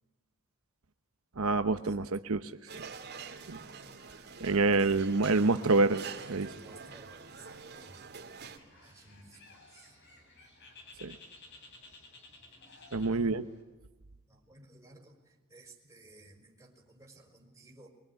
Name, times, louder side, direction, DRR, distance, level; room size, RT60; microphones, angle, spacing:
voice 1, 1.4-2.6 3.5-3.6 4.4-6.5 11.0-11.2 12.9-13.4, right 3 dB, 75° right, 9 dB, 0.9 m, -27 dB
sound 1, 2.7-8.6, right 5 dB, 50° right, 2.9 m, -46 dB
voice 2, 6.2-8.0 8.8-9.9 12.5-12.6 13.0-13.4 14.3-17.9, right 2 dB, 15° right, 2 dB, 5.5 m, -56 dB
Bird, 8.6-13.6, left 3 dB, 55° left, 7.1 m, -55 dB
24.0 x 23.5 x 10.0 m, 1.1 s
head